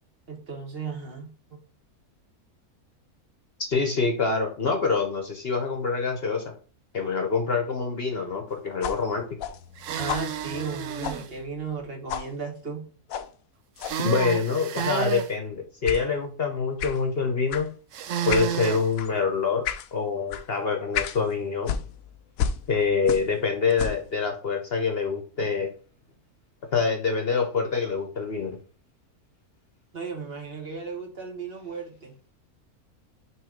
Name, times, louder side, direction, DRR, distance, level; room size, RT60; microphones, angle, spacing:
voice 1, 0.3-1.6 9.9-12.9 29.9-32.1, right 5 dB, 45° right, 2 dB, 1.4 m, -35 dB
voice 2, 3.7-6.5 6.9-9.3 14.0-17.7 18.3-19.6 19.9-21.7 22.7-25.7 26.7-28.6, left 5 dB, 50° left, 4 dB, 1.0 m, -26 dB
sound 1, 8.8-11.8 12.1-12.3 13.1-13.3 13.8-14.0 14.8-15.0 15.9-16.1 16.8-17.0 17.5-17.7 18.3-18.5 18.9-19.1 19.6-19.9 20.3-20.5 20.9-21.2 21.6-23.4 23.7-24.1, left 8 dB, 75° left, 1.0 m, -32 dB
sound 2, 9.8-11.3 13.8-15.3 17.9-18.9, right 9 dB, 65° right, 0.9 m, -30 dB
6.2 x 3.1 x 5.0 m, 0.40 s
omnidirectional pair, 1.5 m